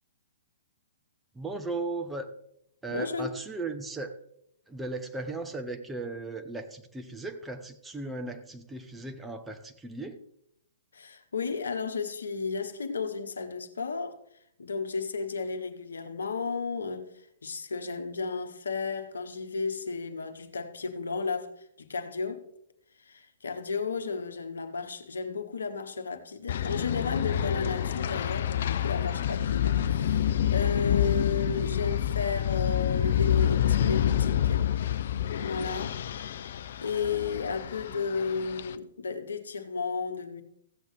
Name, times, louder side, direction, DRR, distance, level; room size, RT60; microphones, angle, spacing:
voice 1, 1.3-2.3 2.8-4.2 4.7-10.2, right 3 dB, 10° right, 0.9 m, -36 dB
voice 2, 2.9-3.3 10.9-14.2 14.6-22.4 23.0-34.7 35.4-36.0 36.8-40.4, left 4 dB, 75° left, 1.2 m, -33 dB
sound 1, 26.5-38.8, left 10 dB, 55° left, 0.5 m, -28 dB
15.5 x 8.2 x 3.4 m
figure-of-eight pair, 120°, 0 cm